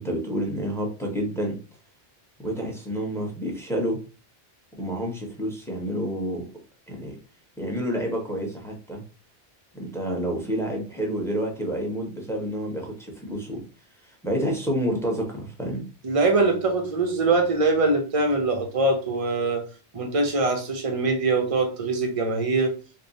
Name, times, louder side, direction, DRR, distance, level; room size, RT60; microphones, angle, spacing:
voice 1, 0.0-1.6 2.4-4.0 4.8-6.5 6.9-7.2 7.6-9.0 9.7-13.6 14.0-15.9, equal, 5° left, 0 dB, 0.9 m, -29 dB
voice 2, 16.0-19.6 19.9-22.7, right 3 dB, 35° right, 4 dB, 0.8 m, -23 dB
3.6 x 2.3 x 4.0 m, 0.34 s
omnidirectional pair, 1.1 m